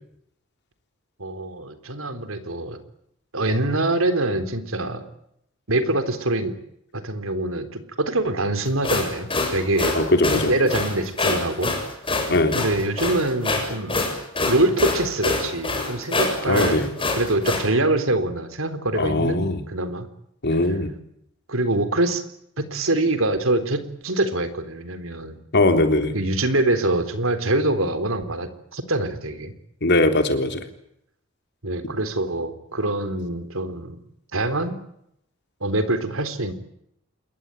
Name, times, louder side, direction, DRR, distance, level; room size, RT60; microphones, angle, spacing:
voice 1, 1.2-2.8 3.3-5.0 5.7-6.5 6.9-10.0 10.3-11.8 12.5-14.1 14.5-16.9 17.1-20.1 21.5-22.2 22.6-25.4 26.1-29.5 31.6-34.0 34.3-34.8 35.6-36.5, right 2 dB, 75° right, 10 dB, 3.7 m, -24 dB
sound 1, 8.7-17.7, left 3 dB, 25° left, 7.3 m, -25 dB
voice 2, 9.9-10.5 12.3-12.6 16.5-16.9 19.0-19.6 20.4-20.9 25.5-26.2 29.8-30.6, left 2 dB, 55° left, 6 dB, 3.7 m, -20 dB
28.0 x 22.0 x 9.2 m, 0.76 s
head